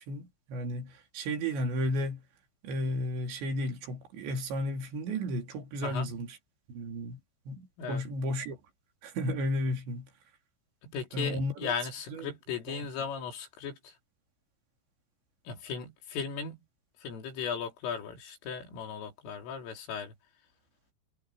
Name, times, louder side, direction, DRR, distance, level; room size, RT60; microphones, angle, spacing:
voice 1, 0.1-2.2 2.6-6.4 6.7-7.2 7.5-8.6 9.0-10.1 11.1-11.7 12.1-12.3 12.7-12.9, equal, 65° right, 5.1 m, -33 dB
voice 2, 5.8-6.1 7.8-8.0 10.8-13.9 15.5-16.6 17.0-20.1, left 6 dB, 85° left, 6.5 m, -37 dB
omnidirectional pair, 5.6 m